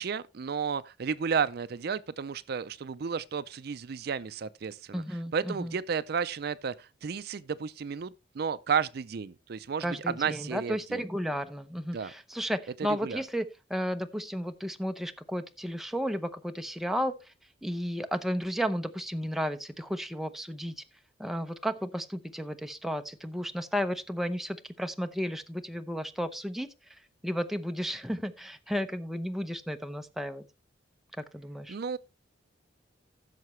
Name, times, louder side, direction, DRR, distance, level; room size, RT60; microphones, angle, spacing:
voice 1, 0.0-5.0 5.3-11.0 11.9-12.1 13.0-13.2 31.7-32.0, right 6 dB, 55° right, 0.4 m, -32 dB
voice 2, 4.9-5.8 9.8-17.3 17.6-20.7 21.2-26.7 27.2-30.4 31.2-31.8, equal, ahead, 0.7 m, -33 dB
15.5 x 6.6 x 3.1 m
head